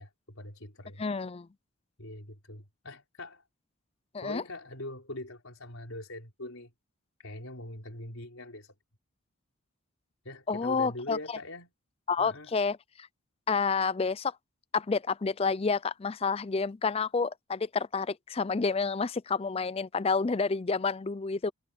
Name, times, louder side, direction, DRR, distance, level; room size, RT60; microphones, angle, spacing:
voice 1, 0.0-1.0 2.0-3.4 4.2-6.7 7.2-8.7 10.2-11.7 12.2-12.5, left 1 dB, 70° left, 4.4 m, -42 dB
voice 2, 1.0-1.5 4.1-4.4 10.5-11.2 12.1-12.8 13.5-14.4 14.7-21.5, left 4 dB, 25° left, 0.4 m, -29 dB
head